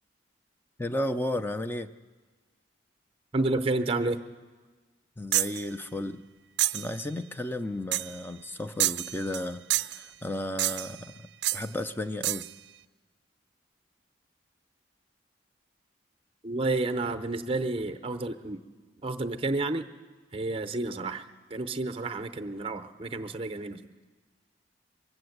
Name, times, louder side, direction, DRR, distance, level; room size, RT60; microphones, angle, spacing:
voice 1, 0.8-1.9 5.2-6.2 6.7-12.5, left 1 dB, 10° left, 9 dB, 0.4 m, -34 dB
voice 2, 3.3-4.2 16.4-18.6 19.0-19.9 20.3-21.2 21.5-23.8, right 2 dB, 30° right, 8 dB, 0.6 m, -30 dB
sound 1, 5.3-5.6 6.6-6.9 7.9-8.2 8.8-9.5 9.7-10.0 10.6-11.0 11.4-11.7 12.2-12.5, right 16 dB, 65° right, 0.4 m, -28 dB
23.0 x 7.8 x 7.9 m, 1.4 s
head